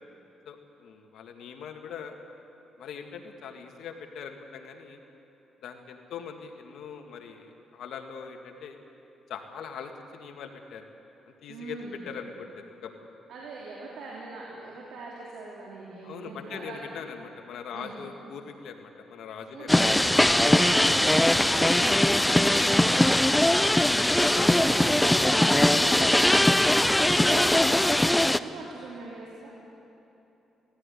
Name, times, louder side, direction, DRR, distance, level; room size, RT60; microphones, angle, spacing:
voice 1, 0.5-2.1 2.8-5.0 5.6-8.8 9.3-10.9 11.4-13.1 16.0-19.8 20.8-20.9 24.1-24.5 25.9-26.0, left 7 dB, 75° left, 4 dB, 2.0 m, -41 dB
voice 2, 11.5-12.0 13.3-16.8 17.7-17.9 19.5-29.5, right 3 dB, 80° right, -4 dB, 3.3 m, -41 dB
sound 1, 19.7-28.4, left 1 dB, 5° left, 0.5 m, -21 dB
17.5 x 16.0 x 10.0 m, 3.0 s
cardioid pair, 105°, 0 cm